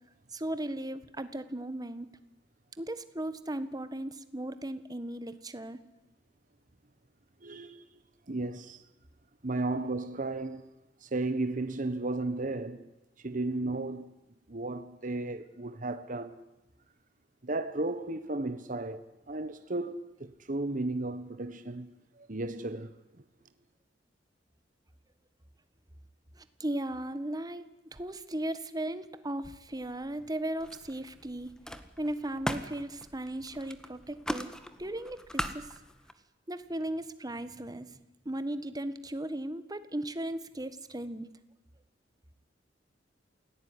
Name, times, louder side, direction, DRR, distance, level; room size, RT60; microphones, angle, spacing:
voice 1, 0.3-2.1 2.8-5.8 26.6-31.5 32.0-34.5 34.8-35.7 36.5-38.0 38.2-41.3, right 1 dB, 20° right, 1.6 m, -36 dB
voice 2, 7.4-7.8 8.3-8.8 9.4-10.7 11.0-12.9 13.2-14.1 14.5-16.4 17.4-21.9 22.2-22.9, right 2 dB, 45° right, 1.2 m, -34 dB
Camera, 29.7-30.3 30.6-36.1, equal, 5° left, 1.5 m, -40 dB
28.0 x 17.5 x 9.9 m
head